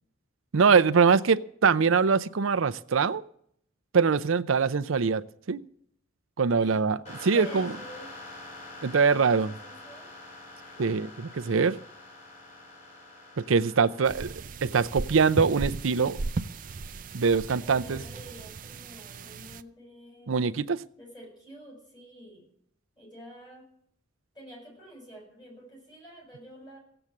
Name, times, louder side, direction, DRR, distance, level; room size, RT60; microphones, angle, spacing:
voice 1, 0.5-3.2 3.9-5.6 6.4-7.7 8.8-9.5 10.8-11.1 11.3-11.8 13.4-14.3 14.6-16.2 17.1-18.0 20.3-20.8, right 5 dB, 85° right, 0.6 m, -23 dB
sound 1, 7.1-14.1, left 2 dB, 35° left, 5.0 m, -45 dB
voice 2, 7.3-8.1 9.1-10.1 10.6-11.1 13.8-14.1 17.4-20.3 20.9-22.5 23.0-23.7 24.3-26.8, equal, 20° left, 6.7 m, -48 dB
sound 2, 14.0-19.6, right 3 dB, 40° right, 0.4 m, -36 dB
16.5 x 7.9 x 7.3 m
head